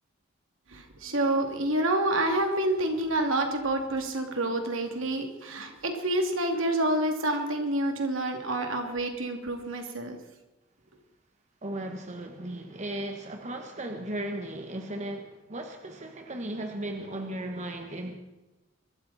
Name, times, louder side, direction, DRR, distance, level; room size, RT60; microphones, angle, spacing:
voice 1, 0.7-10.2, right 1 dB, 70° right, 4 dB, 2.8 m, -28 dB
voice 2, 11.6-18.2, right 1 dB, 35° right, 3 dB, 1.6 m, -36 dB
23.5 x 13.0 x 4.3 m, 1.0 s
head